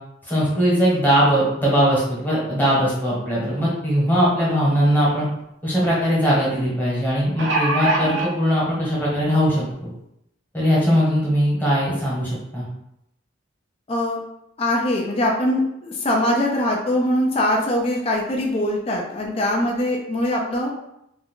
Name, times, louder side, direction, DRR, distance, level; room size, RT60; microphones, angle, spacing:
voice 1, 0.2-5.3 5.6-9.9 10.5-12.7, equal, 10° left, -6 dB, 1.1 m, -20 dB
sound 1, 5.0-5.1 5.4-5.5 7.1-8.3 9.2-9.3 9.7-9.8, right 2 dB, 70° right, 0.5 m, -22 dB
voice 2, 13.9-14.2 14.6-20.7, left 1 dB, 30° left, -1 dB, 0.4 m, -22 dB
2.5 x 2.2 x 3.6 m, 0.80 s
head